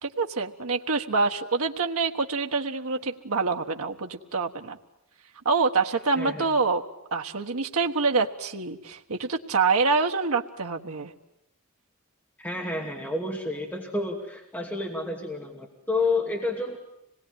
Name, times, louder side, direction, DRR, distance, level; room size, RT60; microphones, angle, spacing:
voice 1, 0.0-4.8 5.4-6.8 7.1-11.1, right 4 dB, 80° right, 3 dB, 1.3 m, -26 dB
voice 2, 6.2-6.5 12.4-16.8, left 2 dB, 10° left, 0 dB, 2.5 m, -30 dB
26.0 x 20.0 x 10.0 m, 0.85 s
head